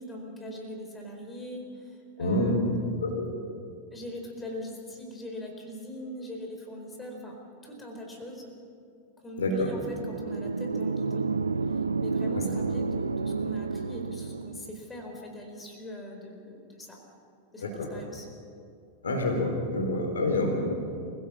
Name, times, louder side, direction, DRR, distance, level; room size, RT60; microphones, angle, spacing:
voice 1, 0.0-3.0 3.9-7.4 7.6-8.5 9.2-11.3 11.7-17.0 17.5-18.3, equal, 15° left, 2 dB, 4.5 m, -41 dB
voice 2, 2.2-2.6 3.0-3.3 9.4-9.7 17.6-17.7 19.0-20.6, left 1 dB, 70° left, 2 dB, 4.3 m, -27 dB
sound 1, 9.8-14.7, right 4 dB, 75° right, 0.5 m, -30 dB
26.5 x 16.5 x 7.3 m, 2.4 s
figure-of-eight pair, 90°, 0 cm